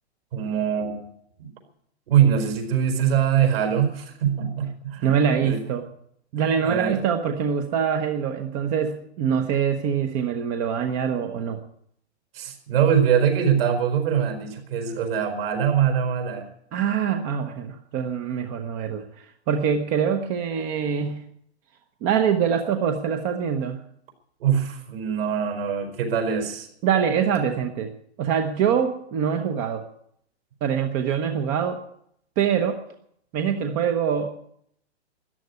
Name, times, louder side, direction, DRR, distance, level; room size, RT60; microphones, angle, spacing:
voice 1, 0.3-1.1 1.4-1.5 2.1-5.1 5.4-5.6 6.4-7.0 12.3-16.5 24.4-26.7, right 8 dB, 55° right, 5 dB, 4.5 m, -23 dB
voice 2, 5.0-5.8 6.3-11.6 16.7-21.3 22.0-23.8 26.8-27.9 28.2-29.8 30.6-31.8 32.4-32.8 33.3-34.4, right 7 dB, 25° right, 6 dB, 0.9 m, -24 dB
13.5 x 10.5 x 9.5 m, 0.72 s
hypercardioid pair, 150°, 34 cm